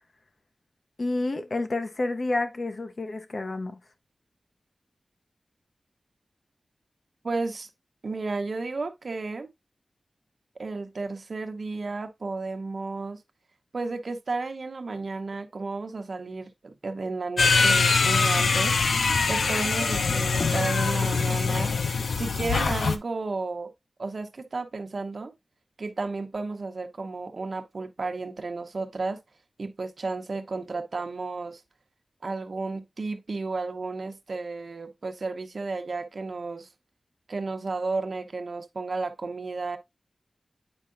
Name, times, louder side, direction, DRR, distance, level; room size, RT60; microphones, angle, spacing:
voice 1, 1.0-3.8, left 2 dB, 50° left, 0.9 m, -29 dB
voice 2, 7.2-7.7 8.0-9.5 10.6-13.2 13.7-18.8 19.3-21.7 22.2-23.7 24.0-25.3 25.8-29.2 29.6-31.6 32.2-36.7 37.3-39.8, right 3 dB, 60° right, 0.9 m, -33 dB
sound 1, 17.4-23.0, left 4 dB, 85° left, 0.6 m, -23 dB
8.9 x 4.6 x 2.5 m
wide cardioid pair, 105°, 0 cm